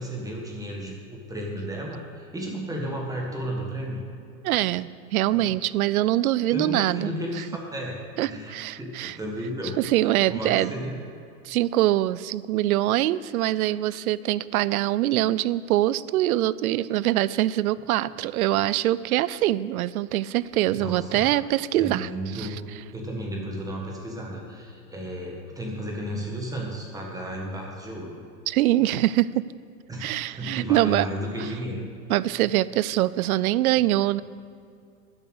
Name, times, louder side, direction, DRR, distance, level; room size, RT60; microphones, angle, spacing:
voice 1, 0.0-4.0 5.3-5.5 6.5-11.0 20.7-21.3 21.7-22.6 22.9-28.1 29.9-30.1 30.4-31.8, equal, 10° right, -1 dB, 1.6 m, -33 dB
voice 2, 4.4-7.2 8.2-9.2 9.8-10.7 11.4-22.1 22.3-22.5 28.5-29.4 30.0-31.1 32.1-34.2, right 14 dB, 65° right, 18 dB, 0.5 m, -24 dB
11.5 x 7.5 x 6.4 m, 2.4 s
hypercardioid pair, 135°, 46 cm